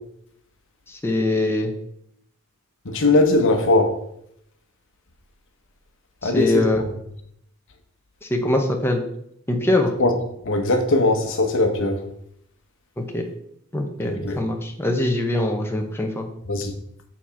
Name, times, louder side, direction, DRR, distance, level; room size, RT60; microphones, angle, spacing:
voice 1, 1.0-1.7 6.2-6.8 8.3-9.0 9.5-9.9 13.1-13.2 13.7-16.3, left 1 dB, 10° left, 0.7 m, -22 dB
voice 2, 2.8-3.9 6.2-6.7 10.0-10.1 10.4-12.0 14.0-14.4 16.5-16.7, left 2 dB, 60° left, 1.0 m, -20 dB
7.1 x 4.3 x 5.8 m
head